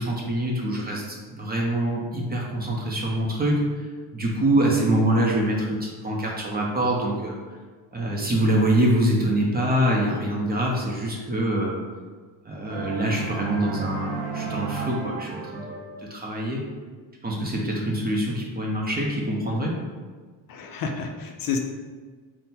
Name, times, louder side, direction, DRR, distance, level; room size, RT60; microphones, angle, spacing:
voice 1, 0.0-3.6 4.1-7.4 7.9-11.8 12.5-16.6 17.2-19.8, right 1 dB, 20° right, -2 dB, 0.5 m, -25 dB
sound 1, 12.7-16.0, right 5 dB, 80° right, 0.7 m, -33 dB
voice 2, 20.5-21.6, left 5 dB, 50° left, 3 dB, 0.5 m, -29 dB
3.7 x 2.1 x 4.1 m, 1.5 s
cardioid pair, 135°, 43 cm